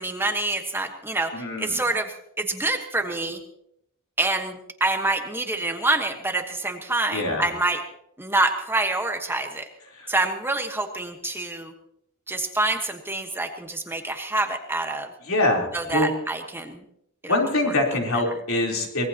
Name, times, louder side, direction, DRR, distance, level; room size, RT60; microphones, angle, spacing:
voice 1, 0.0-1.3 1.6-3.4 4.2-7.8 8.2-9.7 10.1-11.7 12.3-15.1 15.7-16.8 17.2-17.3, right 2 dB, 10° right, 5 dB, 1.3 m, -26 dB
voice 2, 1.3-1.8 7.1-7.5 9.9-10.1 15.2-16.1 17.3-19.1, left 1 dB, 70° left, 1 dB, 3.8 m, -24 dB
24.0 x 18.5 x 2.9 m, 0.78 s
head